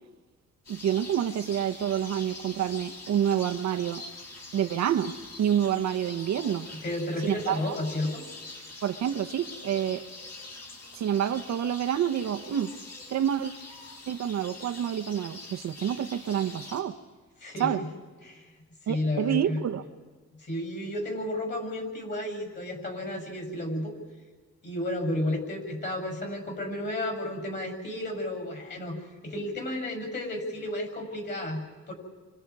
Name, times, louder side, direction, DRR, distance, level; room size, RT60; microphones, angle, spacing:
sound 1, 0.6-16.8, left 2 dB, 55° left, 7.5 m, -44 dB
voice 1, 0.7-4.0 4.5-6.7 7.2-7.8 8.8-10.1 10.9-12.7 13.1-13.5 14.1-17.0 17.6-17.8 18.9-19.8, right 10 dB, 65° right, 1.0 m, -28 dB
voice 2, 6.8-8.2 17.4-17.9 18.2-18.5 18.8-19.6 20.4-23.9 24.6-31.9, left 1 dB, 35° left, 7.0 m, -32 dB
30.0 x 25.5 x 4.8 m
cardioid pair, 90°, 30 cm